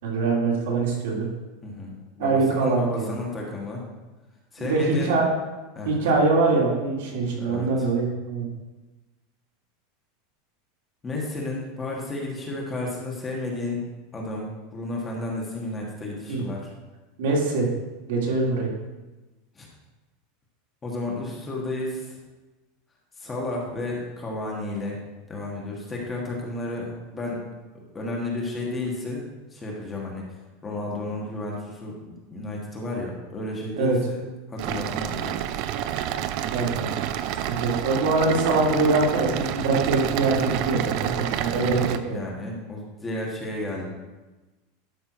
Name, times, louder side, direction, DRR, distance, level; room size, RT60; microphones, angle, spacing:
voice 1, 0.0-1.3 2.2-3.1 4.6-5.2 5.8-8.5 16.3-16.4 17.2-17.7 18.1-18.7 33.8-34.0 36.5-36.9 37.4-42.2, right 3 dB, 70° right, -2 dB, 2.9 m, -23 dB
voice 2, 1.6-3.8 4.5-5.1 5.7-5.9 7.4-7.9 11.0-13.8 14.1-16.7 19.5-19.7 20.8-22.2 23.2-25.0 25.3-27.4 27.9-29.2 29.5-30.2 30.6-34.2 34.5-35.4 41.4-41.7 42.1-43.8, left 2 dB, 15° left, -2 dB, 1.4 m, -32 dB
sound 1, 34.6-42.0, right 11 dB, 40° right, 0.4 m, -29 dB
12.0 x 5.4 x 4.6 m, 1.1 s
supercardioid pair, 175°, 0 cm